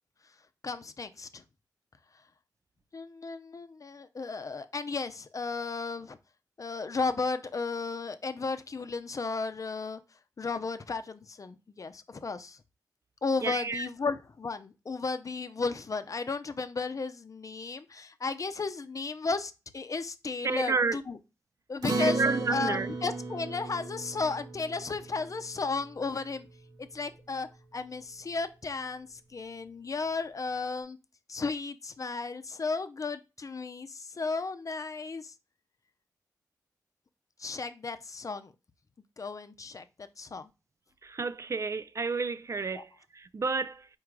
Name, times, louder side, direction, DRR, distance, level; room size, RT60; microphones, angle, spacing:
voice 1, 0.6-1.4 2.9-6.2 6.6-10.0 10.4-12.6 13.2-21.2 21.7-22.2 22.5-26.5 26.8-31.0 31.3-35.3 37.4-38.5 39.2-39.8 40.2-40.5 42.7-42.8, left 4 dB, 50° left, 0.6 m, -34 dB
voice 2, 13.4-13.9 20.4-21.0 22.0-22.9 41.0-43.9, right 4 dB, 45° right, 0.3 m, -31 dB
Acoustic guitar, 21.8-26.5, right 3 dB, 70° right, 1.1 m, -35 dB
4.6 x 2.5 x 4.6 m
cardioid pair, 45°, 7 cm